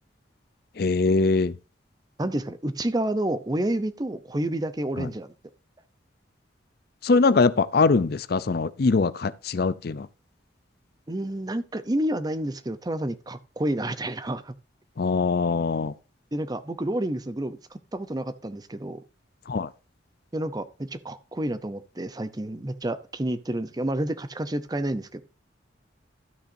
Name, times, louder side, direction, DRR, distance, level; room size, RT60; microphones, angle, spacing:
voice 1, 0.8-1.5 7.0-10.1 15.0-15.9 19.5-19.7, left 4 dB, 55° left, 0.5 m, -22 dB
voice 2, 2.2-5.3 11.1-14.5 16.3-19.0 20.3-25.2, right 1 dB, 20° right, 0.6 m, -29 dB
12.5 x 8.9 x 2.6 m
head